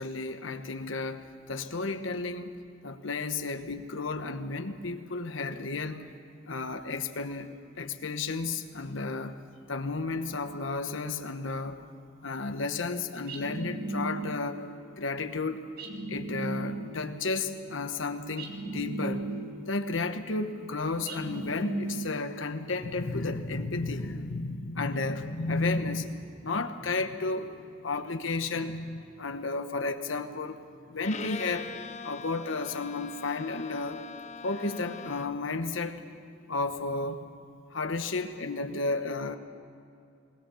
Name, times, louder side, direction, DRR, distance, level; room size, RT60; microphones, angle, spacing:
voice 1, 0.0-6.1 6.4-9.4 9.7-11.8 12.2-14.6 15.0-15.6 16.1-19.2 19.7-30.6 30.9-31.7 32.0-34.0 34.4-36.0 36.5-37.2 37.7-39.4, left 3 dB, 80° left, 8 dB, 1.1 m, -33 dB
sound 1, 13.3-14.6 15.8-17.1 18.4-19.7 21.1-22.4, right 2 dB, 50° right, 2.3 m, -36 dB
Bowed string instrument, 31.0-35.5, left 5 dB, 35° left, 0.6 m, -42 dB
20.5 x 19.5 x 7.0 m, 2.5 s
head